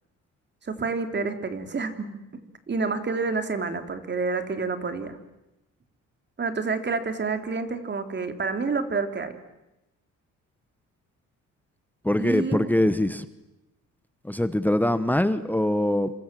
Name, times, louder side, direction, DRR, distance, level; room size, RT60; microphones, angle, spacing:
voice 1, 0.6-2.2 2.7-5.2 6.4-9.4 12.2-12.7, right 4 dB, 35° right, 8 dB, 3.5 m, -28 dB
voice 2, 12.0-13.3 14.2-16.1, left 1 dB, 5° left, 13 dB, 1.2 m, -23 dB
28.5 x 26.0 x 7.7 m, 0.95 s
cardioid pair, 105°, 31 cm